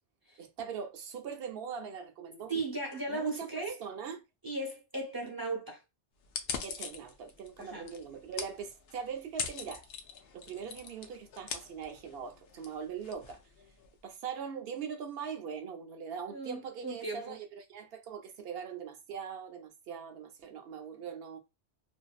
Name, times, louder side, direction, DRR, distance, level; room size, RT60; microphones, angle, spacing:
voice 1, 0.4-2.5 3.1-4.2 6.6-9.9 10.3-13.4 14.0-21.4, right 7 dB, 60° right, 0.8 m, -41 dB
voice 2, 2.5-3.8 4.4-5.8 7.6-7.9 16.3-17.4, right 2 dB, 20° right, 0.8 m, -37 dB
sound 1, 6.2-14.0, left 6 dB, 65° left, 0.7 m, -43 dB
2.7 x 2.6 x 2.3 m
omnidirectional pair, 1.2 m